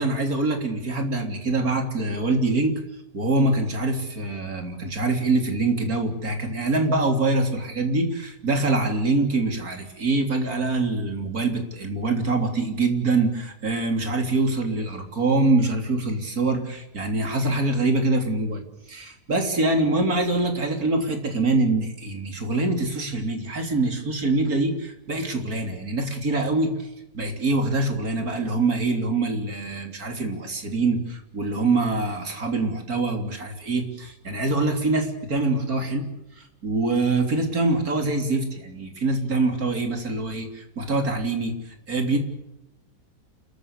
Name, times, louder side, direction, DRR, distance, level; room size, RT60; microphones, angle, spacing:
voice 1, 0.0-2.7 3.1-18.6 18.9-36.1 36.4-42.2, right 2 dB, 70° right, 5 dB, 3.8 m, -24 dB
29.0 x 14.5 x 8.2 m, 0.88 s
omnidirectional pair, 1.6 m